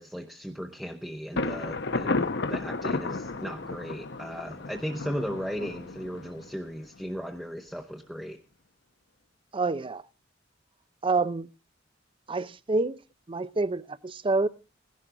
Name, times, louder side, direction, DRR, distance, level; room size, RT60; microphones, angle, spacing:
voice 1, 0.0-8.4, equal, ahead, 0.9 m, -36 dB
Thunder, 1.4-7.0, left 3 dB, 60° left, 1.0 m, -32 dB
voice 2, 9.5-10.0 11.0-11.5 12.3-13.0 13.3-14.5, right 3 dB, 25° right, 0.6 m, -27 dB
17.0 x 11.5 x 3.8 m
head